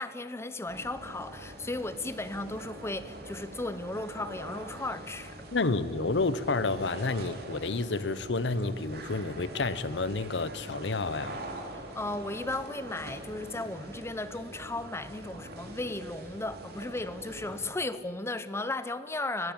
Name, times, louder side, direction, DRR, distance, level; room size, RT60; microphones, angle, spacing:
voice 1, 0.0-5.4 11.9-19.5, left 2 dB, 15° left, 13 dB, 0.7 m, -35 dB
sound 1, 0.7-17.6, right 1 dB, 60° right, 2.6 m, -44 dB
voice 2, 5.5-11.4, left 3 dB, 75° left, 16 dB, 0.8 m, -30 dB
20.5 x 15.5 x 8.8 m, 2.4 s
head